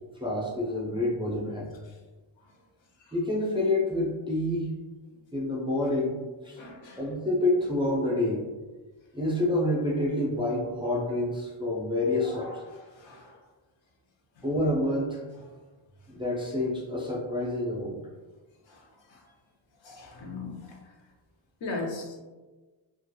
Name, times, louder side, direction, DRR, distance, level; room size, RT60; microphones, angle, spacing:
voice 1, 0.2-1.7 3.1-4.7 5.3-6.6 7.0-8.4 9.1-12.6 14.4-15.2 16.1-18.0, left 1 dB, 10° right, -5 dB, 0.3 m, -28 dB
voice 2, 6.6-7.0 12.3-12.5 13.0-13.2 19.8-20.7 21.6-22.2, left 3 dB, 75° left, 1 dB, 0.7 m, -37 dB
2.7 x 2.3 x 2.2 m, 1.3 s
wide cardioid pair, 125°, 46 cm